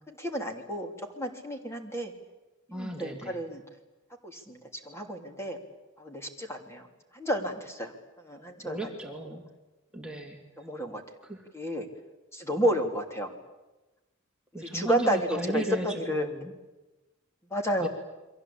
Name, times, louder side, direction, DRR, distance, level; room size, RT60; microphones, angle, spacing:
voice 1, 0.1-2.1 2.7-3.6 4.2-4.6 4.8-5.6 6.0-6.8 7.1-7.9 8.2-8.8 10.6-11.0 11.5-11.9 12.3-13.3 14.7-16.3 17.5-17.9, equal, 15° left, 3 dB, 3.0 m, -31 dB
voice 2, 2.7-3.4 8.6-9.4 9.9-10.4 11.2-11.4 14.5-16.5 17.8-17.9, right 1 dB, 5° right, 1 dB, 2.7 m, -35 dB
29.5 x 23.5 x 8.6 m, 1.1 s
head